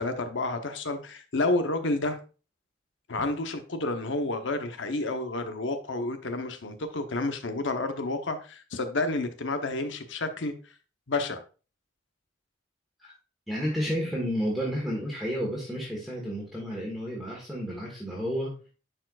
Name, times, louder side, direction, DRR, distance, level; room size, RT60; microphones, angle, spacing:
voice 1, 0.0-2.2 3.1-10.5 11.1-11.4, left 2 dB, 80° left, 0.9 m, -30 dB
voice 2, 13.5-18.7, equal, ahead, 1.5 m, -31 dB
10.0 x 4.5 x 2.4 m
head